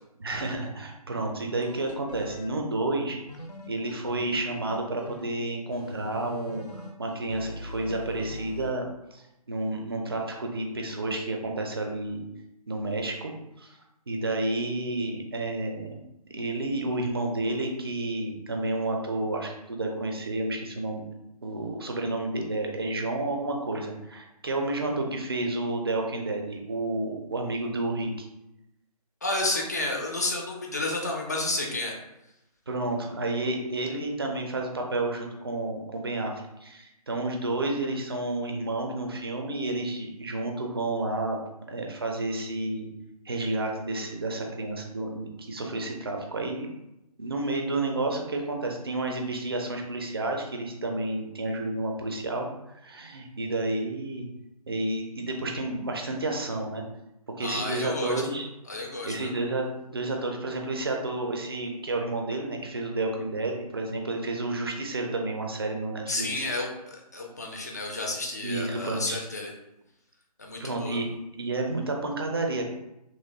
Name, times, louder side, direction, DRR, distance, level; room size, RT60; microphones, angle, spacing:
voice 1, 0.2-3.2 3.7-8.8 9.1-12.2 12.7-13.3 13.6-13.8 14.1-16.0 16.3-21.0 21.4-28.3 32.7-36.3 36.6-41.4 41.7-42.9 43.3-46.7 47.2-54.3 54.7-56.8 57.4-58.5 58.8-66.3 68.4-69.2 70.6-71.1 71.4-72.6, right 2 dB, 40° right, 2 dB, 0.4 m, -30 dB
sound 1, 1.6-2.5 3.3-5.3 5.7-8.7, left 1 dB, 80° left, 0.6 m, -41 dB
voice 2, 29.2-31.9 57.4-58.2 58.7-59.3 66.1-69.5 70.4-71.0, left 2 dB, 25° left, 0 dB, 0.4 m, -31 dB
3.0 x 2.3 x 2.7 m, 0.88 s
figure-of-eight pair, 150°, 20 cm